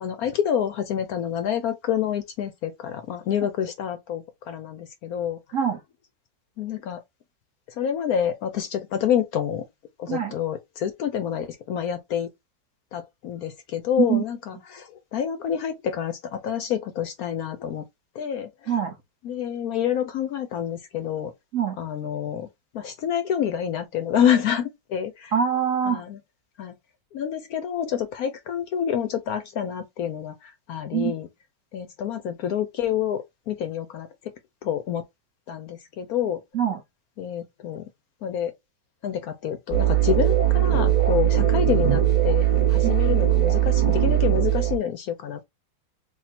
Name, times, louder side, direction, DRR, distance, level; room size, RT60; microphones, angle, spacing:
voice 1, 0.0-5.4 6.6-7.0 7.8-9.6 10.0-12.3 12.9-17.8 18.2-18.7 19.2-21.3 21.8-22.5 22.7-25.3 25.9-26.2 26.6-26.7 27.1-31.3 31.7-34.1 34.6-35.0 35.5-36.4 37.2-37.9 38.2-38.5 39.0-45.4, left 9 dB, 70° left, 0.9 m, -28 dB
voice 2, 25.3-26.0 30.9-31.1 36.5-36.8 42.8-42.9, right 8 dB, 65° right, 0.8 m, -24 dB
sound 1, 39.7-44.8, right 12 dB, 25° right, 1.2 m, -20 dB
3.6 x 2.4 x 4.2 m
omnidirectional pair, 2.0 m